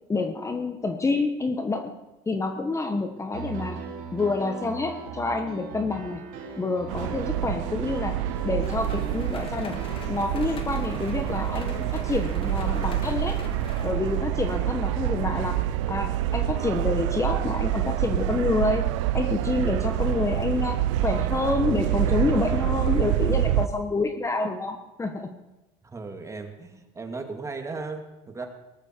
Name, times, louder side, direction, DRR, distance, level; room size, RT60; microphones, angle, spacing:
voice 1, 0.1-2.0 2.3-3.8 4.1-6.2 6.6-9.8 10.1-13.4 13.8-15.6 15.9-18.9 19.1-25.3, left 3 dB, 20° left, 7 dB, 1.3 m, -28 dB
Piano, 3.3-10.2, right 6 dB, 65° right, 4.4 m, -39 dB
sound 1, 6.9-23.7, right 13 dB, 85° right, 0.6 m, -27 dB
sound 2, 8.6-13.9, left 4 dB, 35° left, 2.5 m, -39 dB
voice 2, 25.8-28.5, right 3 dB, 20° right, 5 dB, 2.5 m, -36 dB
18.5 x 12.5 x 4.6 m, 1.0 s
supercardioid pair, 95°, 15 cm